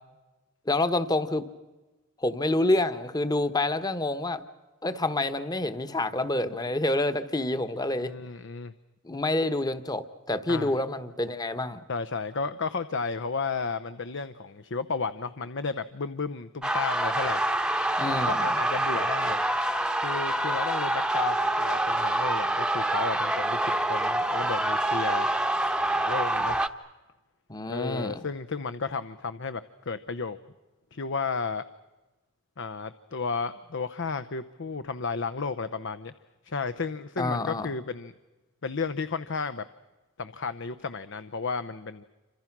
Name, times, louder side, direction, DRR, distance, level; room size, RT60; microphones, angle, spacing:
voice 1, 0.7-1.4 2.2-4.4 4.8-8.1 9.0-11.8 18.0-18.5 18.9-19.0 27.5-28.2 37.2-37.7, left 2 dB, 20° left, 11 dB, 1.2 m, -27 dB
voice 2, 8.0-8.7 10.5-10.7 11.9-17.4 18.0-19.4 20.0-25.3 25.9-26.6 27.7-30.4 30.9-31.6 32.6-36.1 36.4-38.1 38.6-39.6 40.2-42.0, left 4 dB, 60° left, 13 dB, 0.8 m, -33 dB
sound 1, 16.6-26.7, right 1 dB, 5° right, 1.0 m, -26 dB
29.0 x 26.5 x 6.1 m, 1.1 s
head